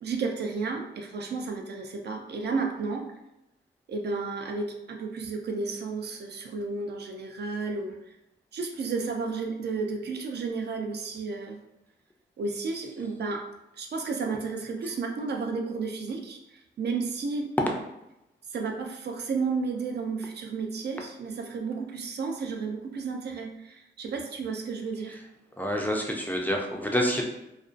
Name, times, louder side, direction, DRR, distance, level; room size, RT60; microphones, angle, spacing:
voice 1, 0.0-3.1 3.9-7.9 8.5-11.6 12.4-13.5 13.7-17.5 18.5-25.2, right 4 dB, 60° right, 3 dB, 0.4 m, -32 dB
voice 2, 25.6-27.2, equal, 10° left, 0 dB, 0.3 m, -27 dB
2.5 x 2.1 x 2.4 m, 0.88 s
wide cardioid pair, 100°, 19 cm